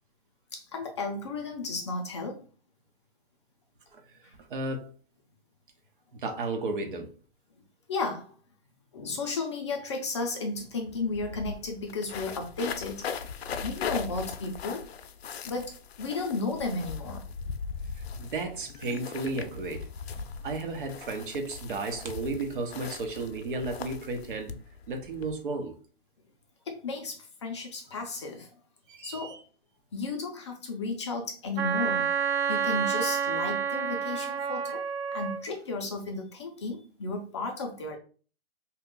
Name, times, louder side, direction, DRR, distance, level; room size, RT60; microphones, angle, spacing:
voice 1, 0.5-2.4 4.2-4.3 7.9-8.3 8.9-13.0 13.6-14.8 15.4-17.3 26.7-28.5 29.0-29.4 29.9-32.1 32.5-34.8 35.1-38.0, left 3 dB, 30° left, 0.5 m, -34 dB
voice 2, 4.5-4.9 6.1-7.1 18.2-19.9 20.4-24.5 24.9-25.7 28.9-29.4, right 3 dB, 55° right, 0.9 m, -33 dB
sound 1, 10.6-10.7 10.9-25.3, left 6 dB, 80° left, 0.5 m, -39 dB
Wind instrument woodwind instrument, 31.6-35.4, right 7 dB, 90° right, 0.6 m, -29 dB
2.9 x 2.3 x 3.7 m
hypercardioid pair, 160°, 31 cm